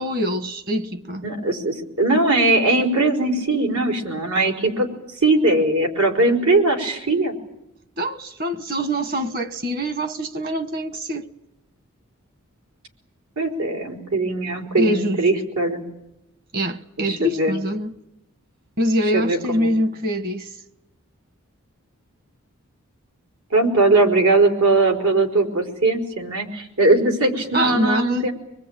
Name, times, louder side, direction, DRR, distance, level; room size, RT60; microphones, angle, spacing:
voice 1, 0.0-1.3 8.0-11.3 14.8-15.2 16.5-17.9 18.8-20.5 27.5-28.3, equal, 40° right, 1.3 m, -24 dB
voice 2, 1.2-4.9 5.2-7.3 13.4-15.8 17.0-17.5 19.1-19.7 23.5-28.3, right 2 dB, 85° right, 4.4 m, -20 dB
25.0 x 20.5 x 8.8 m
head